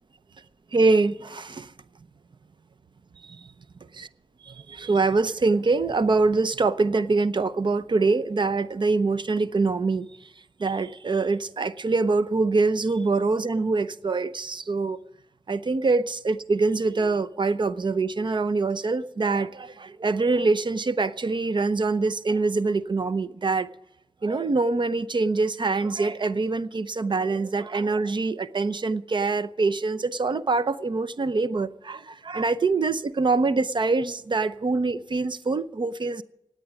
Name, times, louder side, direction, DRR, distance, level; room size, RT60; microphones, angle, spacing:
voice 1, 0.7-1.7 3.2-3.5 3.9-4.1 4.4-10.1 10.6-15.0 15.5-23.7 24.2-36.2, right 3 dB, 55° right, 0.7 m, -24 dB
17.0 x 9.2 x 8.2 m
cardioid pair, 50°, 10 cm